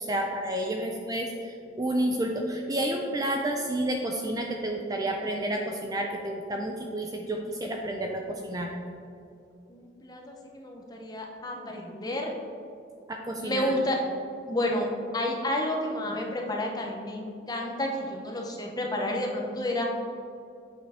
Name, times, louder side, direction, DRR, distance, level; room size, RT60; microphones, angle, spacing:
voice 1, 0.0-8.7 13.1-13.8, right 1 dB, 20° right, 1 dB, 0.4 m, -30 dB
voice 2, 9.7-12.3 13.4-14.0 14.5-14.9 15.1-19.9, left 1 dB, 20° left, 1 dB, 0.7 m, -30 dB
7.4 x 6.1 x 3.5 m, 2.5 s
head